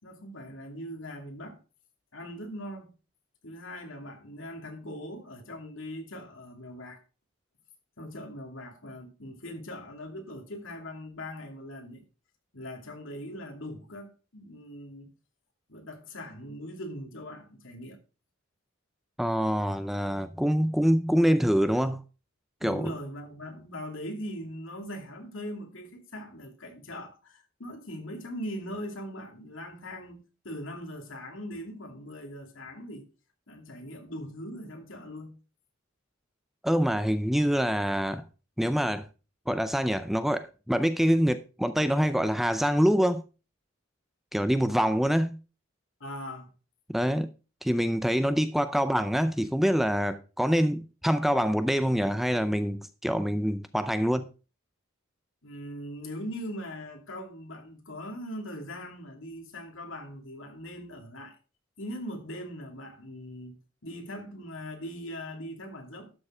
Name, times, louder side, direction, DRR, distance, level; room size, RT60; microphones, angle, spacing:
voice 1, 0.0-1.6 2.1-2.9 3.4-7.0 8.0-12.0 12.5-15.1 15.7-18.0 22.6-33.0 33.5-35.3 46.0-46.5 55.4-61.4 61.8-66.1, equal, 70° left, 2.6 m, -40 dB
voice 2, 19.2-22.0 22.6-22.9 36.6-38.2 38.6-39.1 39.5-43.2 44.3-45.4 46.9-47.3 47.6-54.3, equal, ahead, 0.4 m, -25 dB
12.5 x 6.6 x 4.9 m
head